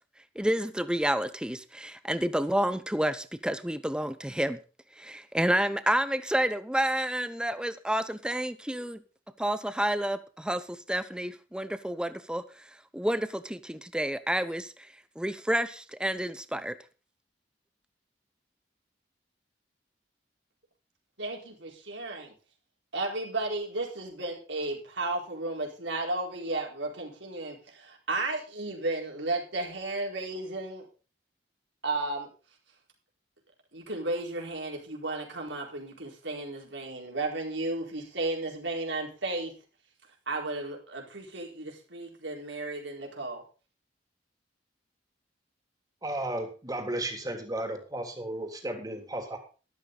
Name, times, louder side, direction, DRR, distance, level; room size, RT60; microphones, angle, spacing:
voice 1, 0.3-4.6 5.0-9.0 9.4-12.4 12.9-14.7 15.2-16.8, right 1 dB, 5° right, 12 dB, 0.8 m, -29 dB
voice 2, 21.2-22.3 22.9-30.9 31.8-32.3 33.7-39.5 40.3-43.4, right 2 dB, 85° right, 0 dB, 4.6 m, -34 dB
voice 3, 46.0-49.4, right 1 dB, 20° right, 3 dB, 3.3 m, -34 dB
12.5 x 12.5 x 4.0 m, 0.35 s
head